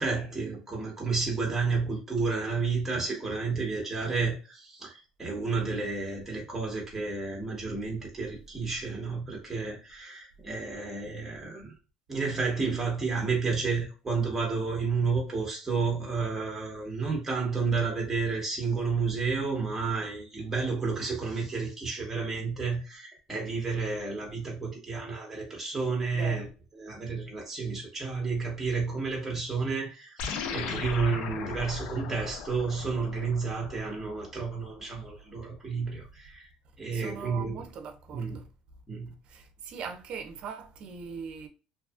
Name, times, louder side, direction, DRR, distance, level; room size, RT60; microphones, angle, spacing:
voice 1, 0.0-11.7 12.1-26.5 26.8-36.5 36.8-37.6 38.1-38.4 38.9-39.1, right 4 dB, 15° right, 1.0 m, -31 dB
voice 2, 26.1-26.5 36.9-38.4 39.3-41.5, right 6 dB, 55° right, 0.5 m, -40 dB
sound 1, 30.2-34.8, left 6 dB, 75° left, 0.4 m, -38 dB
2.7 x 2.3 x 2.3 m
supercardioid pair, 105°, 2 cm